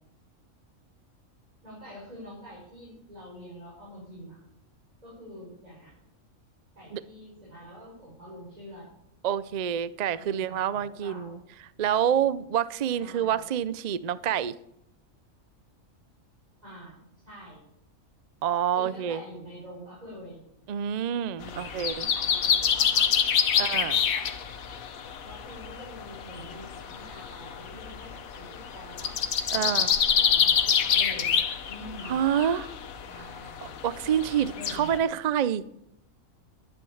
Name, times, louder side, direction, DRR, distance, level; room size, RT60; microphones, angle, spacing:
voice 1, 1.6-4.4 5.0-5.9 6.7-8.9 10.1-11.4 13.0-13.5 16.6-17.6 18.7-20.4 21.4-23.1 23.4-24.3 25.2-29.1 29.5-31.4 31.7-32.2 33.1-33.8 34.5-34.9, equal, 30° right, 5.9 m, -46 dB
voice 2, 9.2-11.4 11.8-14.5 18.4-19.2 20.7-22.1 23.6-24.0 29.5-29.9 32.0-32.7 33.8-35.6, right 9 dB, 60° right, 0.4 m, -27 dB
sound 1, 21.4-35.0, left 8 dB, 80° left, 1.4 m, -27 dB
12.0 x 10.0 x 7.2 m
omnidirectional pair, 1.4 m